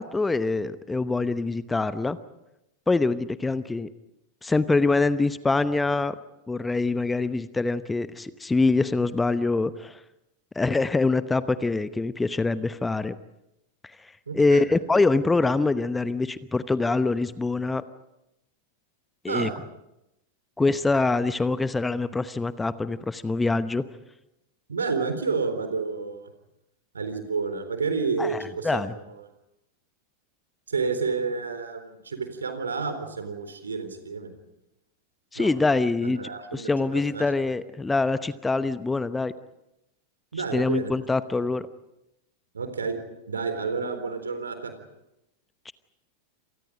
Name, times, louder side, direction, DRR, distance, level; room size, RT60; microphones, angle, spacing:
voice 1, 0.0-2.2 2.9-3.9 4.4-6.1 6.5-10.0 10.5-13.1 14.0-17.8 19.2-19.5 20.6-23.8 28.2-28.9 35.3-36.2 36.5-39.3 40.5-41.7 45.7-45.8, left 3 dB, 10° left, 14 dB, 0.9 m, -24 dB
voice 2, 14.3-14.7 19.3-19.5 24.7-26.3 26.9-28.8 30.7-34.3 35.4-35.5 36.0-37.3 40.3-40.9 42.5-43.0 43.3-44.7, right 4 dB, 70° right, 8 dB, 3.9 m, -30 dB
29.0 x 27.0 x 5.2 m, 0.89 s
figure-of-eight pair, 90°, 0 cm